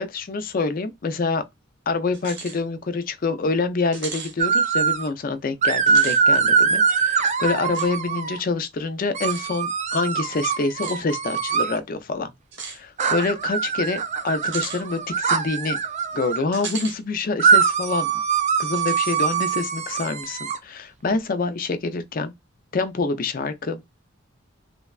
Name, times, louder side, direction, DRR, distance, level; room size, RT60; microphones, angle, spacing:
voice 1, 0.0-1.4 1.9-12.3 12.6-15.8 16.1-18.2 18.6-22.3 22.7-23.8, left 3 dB, 45° left, 0.4 m, -26 dB
sound 1, 2.1-2.6 3.0-3.1 3.9-4.3 5.8-6.2 7.7-7.9 9.3-9.4 10.7-11.0 12.5-12.8 14.4-14.8 16.5-17.0 17.4-17.5 18.8-19.1, right 5 dB, 60° right, 0.8 m, -35 dB
sound 2, 4.4-5.1 5.6-8.4 9.1-11.8 13.0-16.4 17.4-20.6, right 6 dB, 35° right, 0.4 m, -22 dB
3.3 x 2.1 x 2.3 m
head